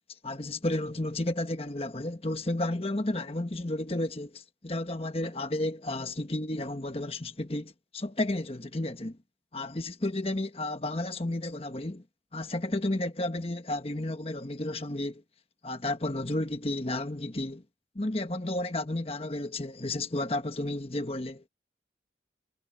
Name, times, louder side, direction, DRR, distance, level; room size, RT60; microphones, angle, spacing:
voice 1, 0.2-9.2 9.5-12.0 12.3-15.2 15.6-17.6 17.9-21.4, left 1 dB, 30° left, 1.3 m, -32 dB
head